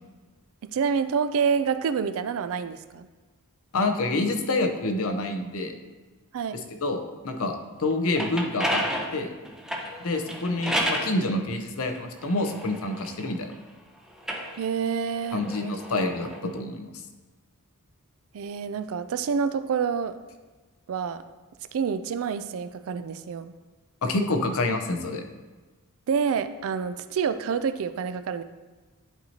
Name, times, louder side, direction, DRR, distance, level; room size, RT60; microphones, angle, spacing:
voice 1, 0.6-3.1 6.3-6.6 14.6-16.2 18.3-20.2 20.9-21.2 21.7-23.5 26.1-28.4, right 6 dB, 65° right, 11 dB, 0.4 m, -28 dB
voice 2, 3.7-5.7 6.8-8.8 9.1-9.3 10.0-13.5 15.3-16.9 24.0-25.2, left 2 dB, 70° left, 6 dB, 0.7 m, -27 dB
sound 1, 7.9-11.1 11.9-13.6 14.1-16.4, equal, 5° right, 0.7 m, -31 dB
10.5 x 4.4 x 2.8 m, 1.3 s
head